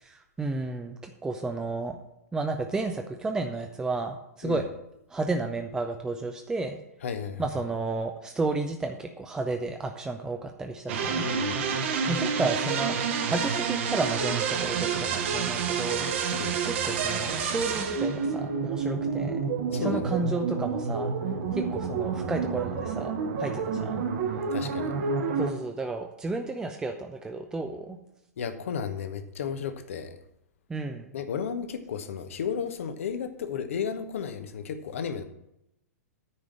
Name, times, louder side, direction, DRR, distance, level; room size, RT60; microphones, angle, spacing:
voice 1, 0.1-2.0 2.3-4.6 5.1-6.8 7.4-11.2 12.1-13.0 13.2-16.1 16.6-19.4 19.7-21.1 21.5-23.1 23.4-24.0 25.4-28.0 30.7-31.1, right 3 dB, 10° right, 4 dB, 0.6 m, -32 dB
voice 2, 7.0-7.4 11.2-11.6 16.3-16.5 19.7-20.1 24.5-24.9 28.4-30.2 31.1-35.2, left 7 dB, 55° left, 9 dB, 1.0 m, -33 dB
sound 1, 10.9-25.5, right 5 dB, 45° right, 1.3 m, -29 dB
9.9 x 5.1 x 7.4 m, 0.82 s
figure-of-eight pair, 110°, 9 cm